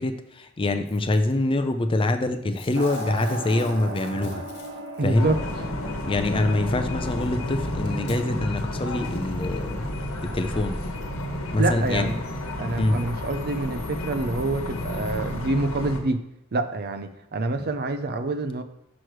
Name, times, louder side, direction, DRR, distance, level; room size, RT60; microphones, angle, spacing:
voice 1, 0.0-4.4 5.0-5.3 6.0-9.8 10.2-10.8 11.5-12.1 12.8-13.0, left 2 dB, 25° left, 7 dB, 0.5 m, -25 dB
Packing tape duct tape / Tearing, 0.8-1.3 2.5-5.1 6.2-6.3 7.2-7.3 8.0-8.2 8.9-9.0, left 4 dB, 55° left, 1.7 m, -47 dB
sound 1, 2.7-7.9, right 1 dB, 65° right, 1.4 m, -37 dB
voice 2, 5.0-5.4 11.6-12.2 12.6-16.3 16.5-18.6, right 2 dB, 50° right, 9 dB, 0.6 m, -27 dB
sound 2, 5.1-16.0, left 1 dB, 80° left, 1.2 m, -31 dB
6.3 x 6.3 x 4.6 m, 0.81 s
head